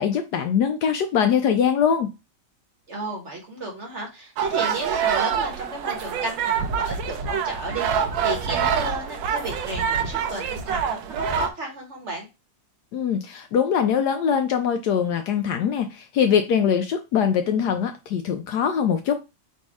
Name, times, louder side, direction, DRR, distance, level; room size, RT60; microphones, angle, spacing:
voice 1, 0.0-2.1 12.9-19.2, left 7 dB, 75° left, 6 dB, 1.0 m, -22 dB
voice 2, 2.9-12.3, right 2 dB, 45° right, 1 dB, 1.2 m, -33 dB
sound 1, 4.4-11.5, right 7 dB, 80° right, 1.4 m, -26 dB
4.1 x 2.7 x 4.7 m, 0.26 s
omnidirectional pair, 2.1 m